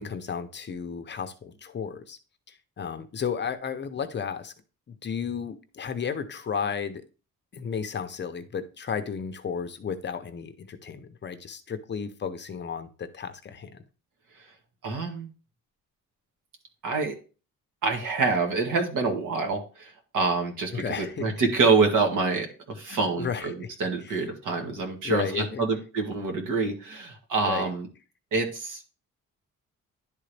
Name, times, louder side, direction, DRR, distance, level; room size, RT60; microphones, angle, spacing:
voice 1, 0.0-2.2 2.5-4.5 5.0-7.0 7.5-13.8 20.7-21.3 22.9-23.7 24.0-24.2 25.0-25.6 27.4-27.7, left 6 dB, 35° left, 0.6 m, -33 dB
voice 2, 14.8-15.3 16.8-17.2 17.8-27.9 28.3-28.8, right 4 dB, 80° right, 1.8 m, -26 dB
10.5 x 3.9 x 3.3 m
cardioid pair, 160°, 31 cm